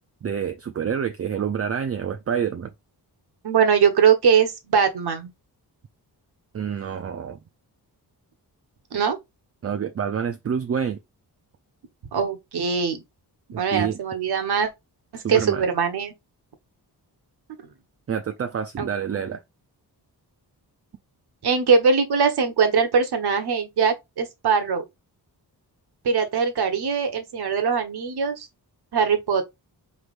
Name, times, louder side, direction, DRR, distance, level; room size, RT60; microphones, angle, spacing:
voice 1, 0.2-2.7 6.5-7.4 9.6-11.0 13.5-14.0 15.2-15.6 18.1-19.4, right 7 dB, 35° right, 0.5 m, -27 dB
voice 2, 3.4-5.3 8.9-9.2 12.1-13.0 13.6-14.7 15.1-16.1 18.8-19.2 21.4-24.8 26.0-28.5 28.9-29.4, right 6 dB, 70° right, 1.3 m, -21 dB
4.7 x 3.5 x 2.5 m
wide cardioid pair, 115°, 40 cm